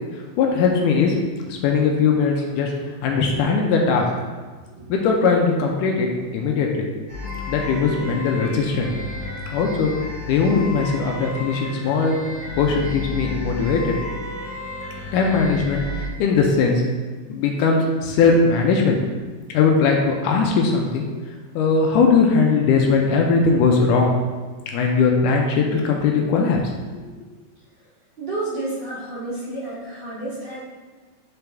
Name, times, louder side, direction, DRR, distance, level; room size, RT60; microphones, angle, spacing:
voice 1, 0.4-1.2 1.5-4.1 4.9-6.9 7.5-8.9 9.5-9.9 10.3-12.2 12.6-13.9 15.1-16.8 17.3-19.0 19.5-21.1 21.6-24.1 24.7-26.6, left 4 dB, 80° left, 1 dB, 2.1 m, -19 dB
sound 1, 7.1-16.1, left 2 dB, 90° right, 3.6 m, -32 dB
voice 2, 28.2-30.6, right 2 dB, 40° right, -11 dB, 2.1 m, -30 dB
8.2 x 3.9 x 3.4 m, 1.4 s
omnidirectional pair, 3.9 m